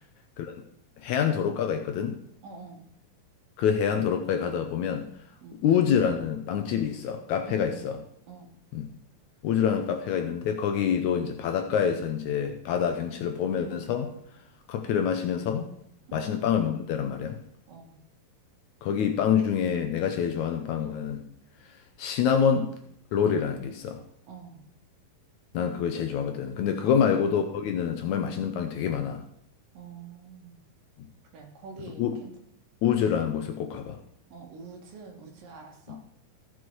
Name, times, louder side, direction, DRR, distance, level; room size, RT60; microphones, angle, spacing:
voice 1, 1.0-2.1 3.6-5.1 5.6-8.0 8.7-8.9 9.4-14.1 14.7-15.7 16.1-17.4 18.8-21.2 22.0-22.7 23.1-24.0 25.5-29.2 32.0-32.2 32.8-34.0 35.9-36.0, left 8 dB, 75° left, 6 dB, 1.9 m, -26 dB
voice 2, 2.4-2.8 5.4-5.6 7.5-7.8 8.3-8.5 16.1-16.3 17.7-18.0 24.2-24.6 26.8-27.1 29.7-30.6 31.3-32.3 34.3-36.0, right 4 dB, 75° right, 2 dB, 3.3 m, -46 dB
14.0 x 6.2 x 4.6 m, 0.70 s
omnidirectional pair, 3.9 m